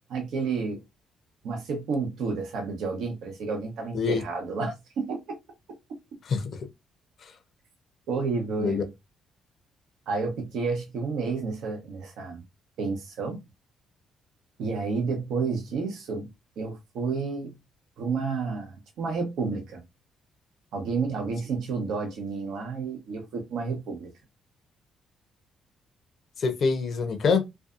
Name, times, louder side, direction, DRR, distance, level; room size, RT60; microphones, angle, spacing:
voice 1, 0.1-0.8 1.4-5.4 8.1-8.9 10.1-12.4 12.8-13.4 14.6-16.3 16.6-17.6 18.0-19.8 20.7-24.1, right 4 dB, 80° right, 0.8 m, -30 dB
voice 2, 26.4-27.5, left 5 dB, 55° left, 0.5 m, -25 dB
2.6 x 2.3 x 2.4 m
cardioid pair, 90°, 0 cm